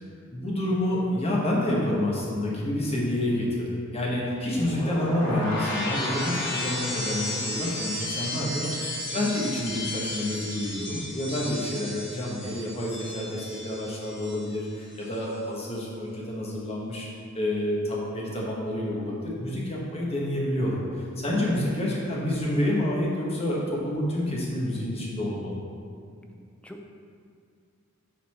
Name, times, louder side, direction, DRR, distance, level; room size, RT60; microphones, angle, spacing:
voice 1, 0.3-17.1 17.3-20.8 21.2-25.6, left 1 dB, 30° left, -4 dB, 1.3 m, -28 dB
sound 1, 4.5-14.6 14.9-15.4, left 1 dB, 60° left, 1.3 m, -33 dB
voice 2, 26.1-26.9, equal, 5° left, 3 dB, 0.4 m, -42 dB
7.5 x 4.2 x 4.2 m, 2.3 s
head